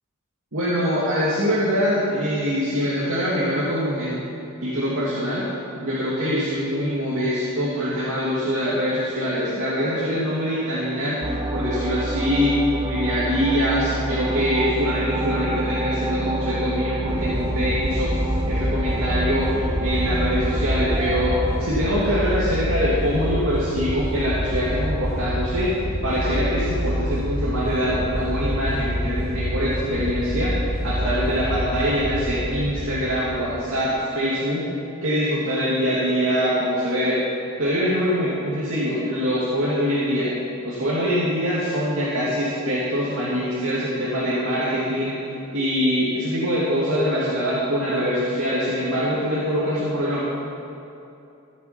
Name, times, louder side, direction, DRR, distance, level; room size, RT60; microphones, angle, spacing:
voice 1, 0.5-4.2 4.6-5.5 5.8-11.2 11.5-12.6 12.8-18.1 18.4-21.3 21.6-25.7 26.0-34.7 35.0-37.2 37.6-40.3 40.6-45.1 45.5-50.3, equal, 70° right, -9 dB, 2.7 m, -24 dB
sound 1, 11.2-21.7, right 1 dB, 15° right, 0.5 m, -27 dB
sound 2, 17.1-33.6, equal, 45° right, 1.1 m, -27 dB
15.5 x 8.7 x 5.9 m, 2.8 s
head